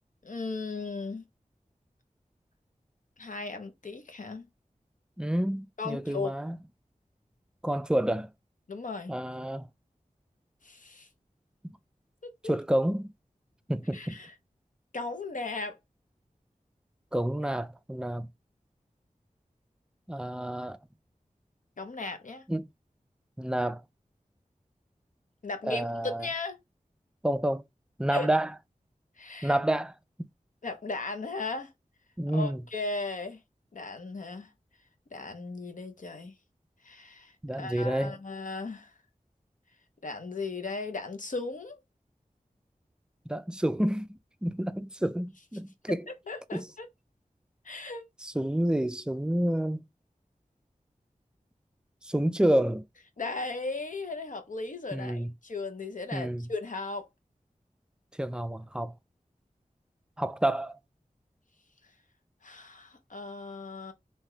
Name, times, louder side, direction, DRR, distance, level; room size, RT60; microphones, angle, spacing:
voice 1, 0.2-1.2 3.2-4.5 5.8-6.4 8.7-9.1 10.6-11.1 12.4-12.5 13.9-14.3 14.9-15.8 21.8-22.4 25.4-26.6 28.1-28.3 29.2-29.6 30.6-31.7 32.3-33.4 33.7-34.5 35.1-36.3 36.8-37.3 37.6-38.9 40.0-41.8 46.1-46.9 47.6-48.0 53.2-57.1 62.4-63.9, left 3 dB, 70° left, 0.7 m, -36 dB
voice 2, 5.2-6.6 7.6-8.3 9.1-9.7 12.4-13.1 13.7-14.2 17.1-18.3 20.1-20.8 22.5-22.7 23.4-23.8 25.6-26.3 27.2-27.6 28.0-28.5 29.4-29.9 32.2-32.6 37.4-38.2 43.3-46.0 46.5-46.6 48.2-49.8 52.0-52.8 54.9-55.3 56.1-56.5 58.2-58.9 60.2-60.7, right 1 dB, 5° right, 0.3 m, -29 dB
2.8 x 2.2 x 3.2 m
wide cardioid pair, 55°, 14 cm